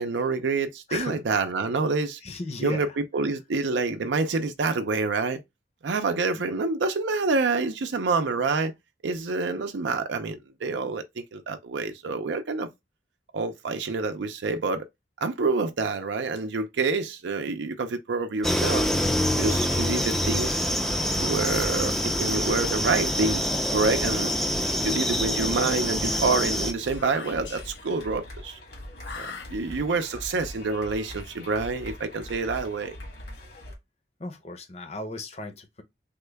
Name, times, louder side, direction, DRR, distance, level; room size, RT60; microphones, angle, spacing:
voice 1, 0.0-2.2 2.6-5.4 5.8-8.7 9.0-12.7 13.3-14.9 15.2-18.9 19.4-20.7 21.2-24.3 24.8-28.6 29.2-33.0, right 3 dB, 85° right, 0.5 m, -27 dB
voice 2, 0.9-1.2 2.2-3.0 6.3-6.4 34.2-35.8, left 2 dB, 35° left, 0.7 m, -36 dB
sound 1, 18.4-26.7, equal, ahead, 0.4 m, -26 dB
sound 2, 18.7-33.7, left 1 dB, 65° left, 1.3 m, -42 dB
Whispering, 23.3-25.3 26.0-28.1 29.0-30.0, left 5 dB, 90° left, 0.8 m, -44 dB
3.5 x 2.2 x 3.3 m
head